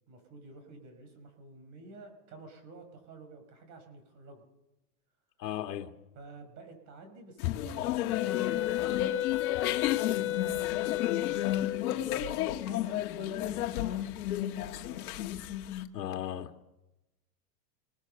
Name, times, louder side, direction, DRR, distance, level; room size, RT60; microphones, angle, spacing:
voice 1, 0.1-4.4 6.2-15.3, right 3 dB, 35° right, 5.4 m, -51 dB
voice 2, 5.4-5.9 15.9-16.5, left 11 dB, 85° left, 1.8 m, -36 dB
sound 1, 7.4-15.9, left 13 dB, 60° left, 1.7 m, -32 dB
Wind instrument woodwind instrument, 8.1-11.9, left 14 dB, 25° left, 1.3 m, -32 dB
25.5 x 19.0 x 6.8 m
supercardioid pair, 145°, 48 cm